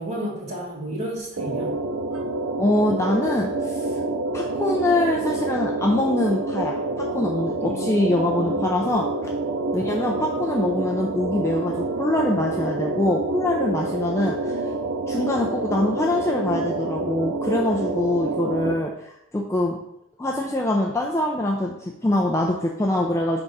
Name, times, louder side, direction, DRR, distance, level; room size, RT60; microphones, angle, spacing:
voice 1, 0.0-1.7 7.6-8.9, equal, 35° right, -7 dB, 2.1 m, -33 dB
sound 1, 1.4-18.7, right 2 dB, 85° right, 0.6 m, -27 dB
voice 2, 2.6-3.9 4.3-9.1 9.7-14.6 15.1-18.9 19.3-19.8 20.2-23.4, left 1 dB, 15° left, 0 dB, 0.4 m, -24 dB
5.0 x 3.5 x 5.4 m, 0.80 s
head